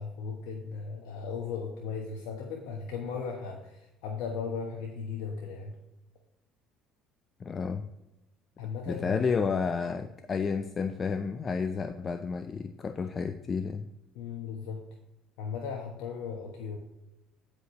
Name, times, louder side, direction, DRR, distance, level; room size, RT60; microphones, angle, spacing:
voice 1, 0.0-5.8 8.6-9.3 14.1-14.8 15.4-16.8, left 5 dB, 75° left, 2 dB, 1.1 m, -37 dB
voice 2, 7.4-7.9 8.9-13.9, left 5 dB, 35° left, 9 dB, 0.5 m, -31 dB
15.0 x 5.2 x 3.0 m, 0.95 s
supercardioid pair, 75°, 0 cm